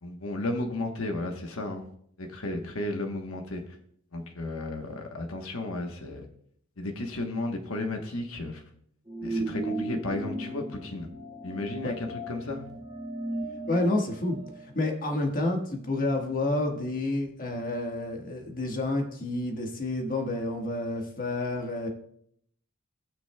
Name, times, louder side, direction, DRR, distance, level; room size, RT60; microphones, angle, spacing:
voice 1, 0.0-1.8 2.2-3.8 4.1-6.3 6.8-8.6 9.2-11.1 11.4-12.7, left 2 dB, 65° left, 4 dB, 1.1 m, -33 dB
sound 1, 9.1-15.2, right 1 dB, 20° right, 2.5 m, -36 dB
voice 2, 13.7-14.4 14.7-21.9, left 2 dB, 40° left, 2 dB, 1.4 m, -29 dB
18.0 x 6.0 x 2.2 m, 0.66 s
head